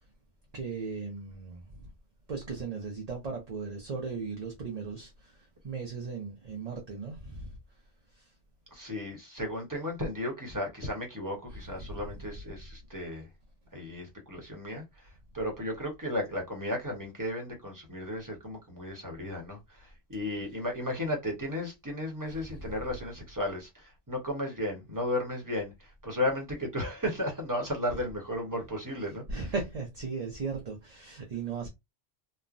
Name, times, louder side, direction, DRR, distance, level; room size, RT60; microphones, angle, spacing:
voice 1, 0.5-1.9 2.3-7.6 8.1-8.3 11.8-12.0 22.3-22.6 29.3-31.7, right 4 dB, 45° right, 0.6 m, -37 dB
voice 2, 8.7-13.3 13.7-29.2, left 1 dB, 20° right, 1.0 m, -34 dB
3.1 x 2.1 x 2.5 m
omnidirectional pair, 1.1 m